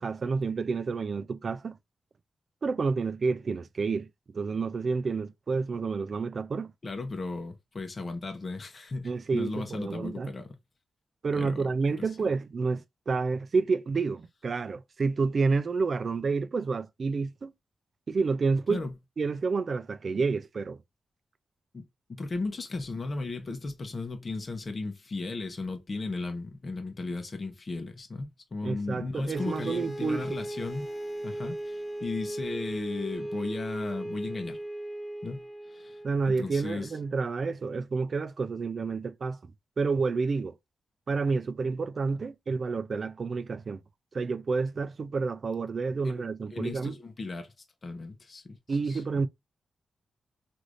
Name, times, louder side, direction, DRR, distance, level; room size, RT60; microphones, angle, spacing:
voice 1, 0.0-1.8 2.6-4.1 4.3-6.7 9.0-10.3 11.2-17.5 18.1-18.8 19.2-20.8 28.6-30.4 36.0-39.5 39.8-40.6 41.1-43.8 44.1-47.0 48.7-49.3, right 4 dB, 50° right, 0.3 m, -29 dB
voice 2, 6.8-10.5 11.3-11.7 12.0-12.3 18.7-18.9 21.7-30.9 31.2-34.6 35.2-36.0 36.3-36.9 46.0-46.3 46.5-47.5 47.8-49.0, left 3 dB, 40° left, 0.7 m, -36 dB
sound 1, 29.3-37.1, right 1 dB, 5° left, 1.0 m, -38 dB
3.2 x 2.5 x 2.4 m
cardioid pair, 95°, 0 cm